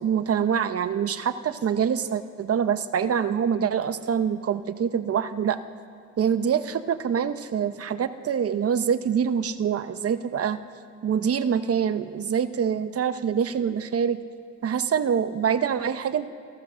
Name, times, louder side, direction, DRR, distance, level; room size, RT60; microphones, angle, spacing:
voice 1, 0.0-5.6 6.2-10.6 11.0-14.2 14.6-16.3, right 7 dB, 50° right, 11 dB, 1.0 m, -25 dB
29.0 x 14.5 x 6.4 m, 2.3 s
cardioid pair, 90°, 30 cm